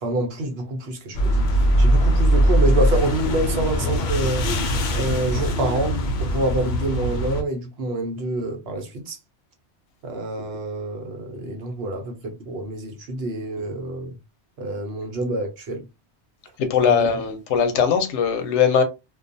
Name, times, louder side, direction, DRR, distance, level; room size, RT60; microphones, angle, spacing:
voice 1, 0.0-1.5 1.8-5.9 6.2-9.2 10.0-14.2 14.6-15.8 16.8-17.1, right 1 dB, 65° right, 0.9 m, -27 dB
sound 1, 1.1-7.4, equal, 60° left, 0.5 m, -21 dB
voice 2, 16.6-18.8, left 7 dB, 85° left, 0.9 m, -20 dB
2.3 x 2.3 x 2.5 m
omnidirectional pair, 1.2 m